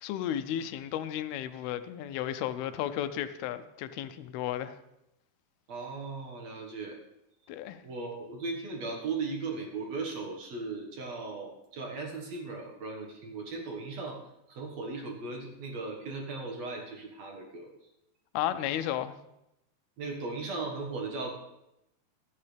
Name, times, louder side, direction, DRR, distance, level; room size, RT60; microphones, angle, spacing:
voice 1, 0.0-4.8 7.5-7.8 18.3-19.1, left 11 dB, 85° left, 2.6 m, -33 dB
voice 2, 5.7-7.0 7.8-14.2 14.5-17.7 18.7-18.8 20.0-21.3, right 3 dB, 55° right, 2.4 m, -37 dB
16.5 x 11.5 x 3.4 m
omnidirectional pair, 4.4 m